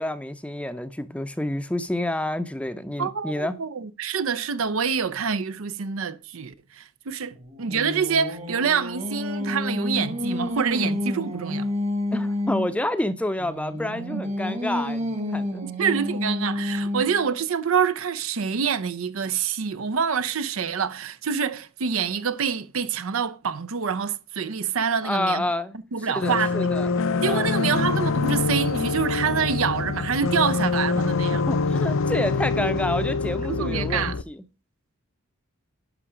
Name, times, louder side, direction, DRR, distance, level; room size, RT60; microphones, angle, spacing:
voice 1, 0.0-3.6 12.1-15.6 25.0-25.8 26.1-26.9 27.3-27.5 30.9-31.1 31.5-34.4, left 1 dB, 5° left, 0.6 m, -29 dB
voice 2, 3.0-11.7 14.1-14.2 15.6-25.5 25.9-26.7 27.2-31.4 33.5-34.2, right 6 dB, 75° right, 0.6 m, -26 dB
Singing, 7.3-12.8 13.4-17.3, left 1 dB, 30° right, 1.3 m, -29 dB
sound 1, 26.2-34.2, left 4 dB, 60° left, 0.6 m, -25 dB
11.5 x 5.6 x 5.0 m
head